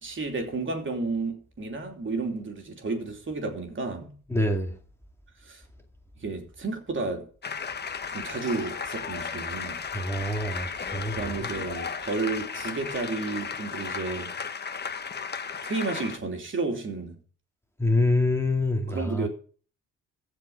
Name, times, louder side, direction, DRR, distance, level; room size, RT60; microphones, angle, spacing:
voice 1, 0.0-4.2 5.4-5.6 6.2-7.3 8.1-9.8 11.1-14.3 15.6-17.2 18.9-19.3, right 3 dB, 40° right, 3.2 m, -32 dB
voice 2, 4.3-4.7 9.9-11.3 17.8-19.3, left 2 dB, 10° left, 2.2 m, -26 dB
sound 1, 7.4-16.2, left 6 dB, 35° left, 1.2 m, -35 dB
15.0 x 5.1 x 8.7 m
cardioid pair, 90°, 30 cm